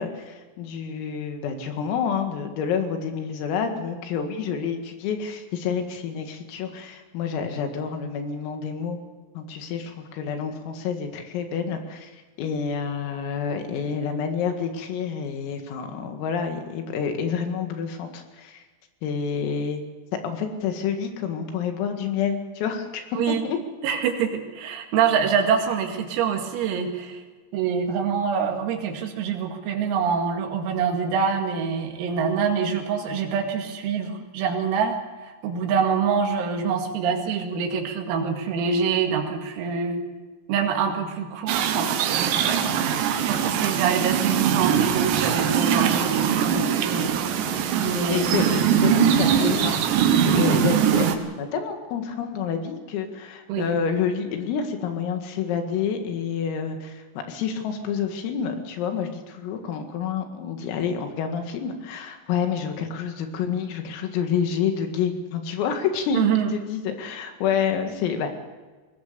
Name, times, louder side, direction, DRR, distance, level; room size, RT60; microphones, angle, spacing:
voice 1, 0.0-9.0 9.4-12.1 12.4-18.6 19.0-19.8 20.2-23.6 48.1-51.1 51.4-66.3 66.5-68.4, left 7 dB, 80° left, 5 dB, 4.7 m, -28 dB
voice 2, 23.8-27.2 27.5-40.0 40.5-42.8 43.3-47.5 47.8-48.5 53.5-53.8 66.1-66.5, right 6 dB, 90° right, 3 dB, 4.9 m, -25 dB
sound 1, 41.5-51.2, right 8 dB, 70° right, 3.3 m, -22 dB
22.0 x 18.5 x 7.0 m, 1.3 s
omnidirectional pair, 5.9 m